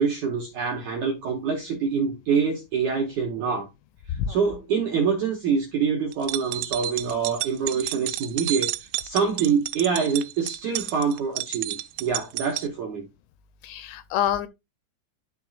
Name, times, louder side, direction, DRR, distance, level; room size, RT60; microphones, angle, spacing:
voice 1, 0.0-3.7 4.1-13.0, right 6 dB, 75° right, 1.8 m, -26 dB
sound 1, 6.1-12.7, right 17 dB, 90° right, 2.9 m, -31 dB
voice 2, 13.6-14.5, left 10 dB, 85° left, 2.5 m, -26 dB
12.0 x 4.6 x 2.4 m
omnidirectional pair, 5.2 m